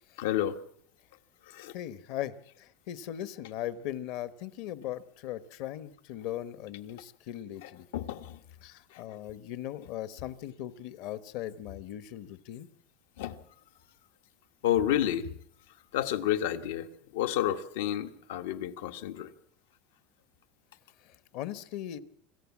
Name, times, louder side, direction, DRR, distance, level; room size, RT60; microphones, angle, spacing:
voice 1, 0.2-0.6 1.4-1.7 7.6-8.4 8.9-9.2 13.2-13.4 14.6-15.3 15.9-19.3, left 11 dB, 80° left, 9 dB, 1.4 m, -31 dB
voice 2, 1.7-7.9 8.6-12.7 21.0-22.0, left 12 dB, 50° left, 14 dB, 1.0 m, -39 dB
26.5 x 15.0 x 7.3 m, 0.65 s
supercardioid pair, 175°, 0 cm